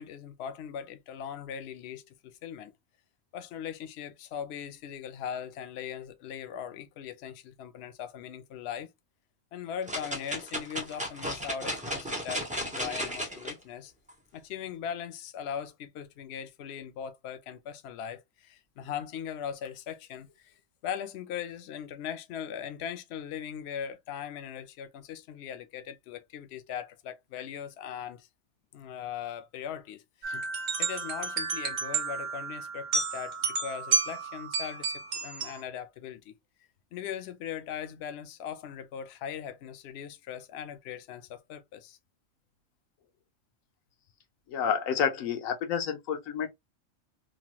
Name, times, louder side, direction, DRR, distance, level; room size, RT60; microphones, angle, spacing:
voice 1, 0.0-2.7 3.3-8.9 9.5-13.9 14.3-20.5 20.8-28.3 28.7-30.5 30.8-36.4 36.9-42.0, left 8 dB, 65° left, 0.7 m, -39 dB
sound 1, 9.9-13.5 14.1-14.2, equal, 10° right, 0.4 m, -34 dB
sound 2, 30.2-35.6, right 4 dB, 60° right, 0.9 m, -31 dB
voice 2, 44.5-46.5, left 7 dB, 85° left, 1.0 m, -29 dB
3.0 x 2.2 x 2.8 m
omnidirectional pair, 1.4 m